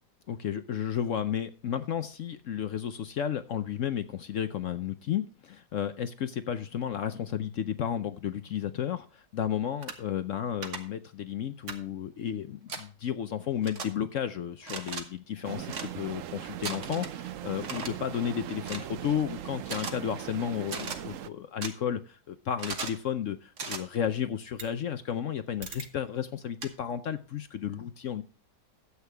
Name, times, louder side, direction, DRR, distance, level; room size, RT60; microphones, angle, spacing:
voice 1, 0.3-28.2, left 9 dB, 60° left, 0.8 m, -33 dB
sound 1, 9.8-9.9 10.6-10.8 11.7-11.8 12.7-12.8 13.6-13.9 14.6-15.0 15.7-15.9 16.6-17.1 17.6-17.9 18.6-18.9 19.6-19.9 20.6-21.0 21.6-21.7 22.6-23.0 23.6-23.8 24.6-24.7 25.6-25.9 26.6-26.7, right 4 dB, 45° right, 1.6 m, -37 dB
sound 2, 15.4-21.3, right 11 dB, 65° right, 0.8 m, -40 dB
13.0 x 8.3 x 3.3 m
omnidirectional pair, 1.8 m